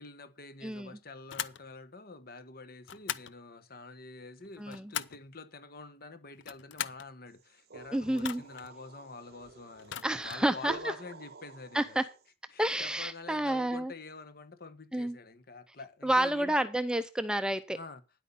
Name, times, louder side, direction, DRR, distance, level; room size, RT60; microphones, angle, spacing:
voice 1, 0.0-10.0 10.2-12.0 12.5-16.5 17.7-18.0, left 3 dB, 50° left, 1.2 m, -47 dB
voice 2, 0.6-1.0 4.6-4.9 7.9-8.4 10.0-10.9 11.7-12.0 12.6-13.9 14.9-15.2 16.0-17.8, right 1 dB, 5° right, 0.6 m, -30 dB
sound 1, 1.3-1.6 2.8-3.3 4.4-5.3 6.3-7.1 8.2-8.7 9.8-10.5, left 9 dB, 70° left, 0.6 m, -39 dB
sound 2, 7.3-12.3, right 3 dB, 55° right, 0.9 m, -49 dB
10.5 x 8.3 x 5.4 m
head